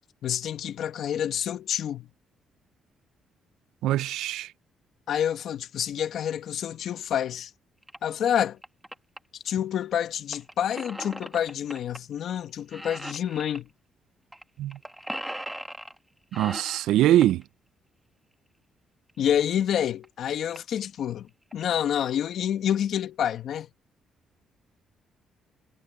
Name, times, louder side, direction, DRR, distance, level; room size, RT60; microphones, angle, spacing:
voice 1, 0.2-2.1 5.1-7.5 8.0-8.6 9.4-13.7 19.2-23.7, left 9 dB, 70° left, 1.8 m, -28 dB
voice 2, 3.8-4.5 14.6-14.8 16.4-17.4, right 13 dB, 90° right, 0.4 m, -22 dB
sound 1, 7.8-8.0 8.4-9.2 10.3-12.0 12.3-12.5 12.7-13.6 14.3-14.4 14.7-16.0 16.3-17.4 19.1-19.2 19.8-19.9 20.0-20.1 20.5-20.8 21.3-21.6, right 1 dB, 5° right, 1.9 m, -38 dB
cardioid pair, 90°, 0 cm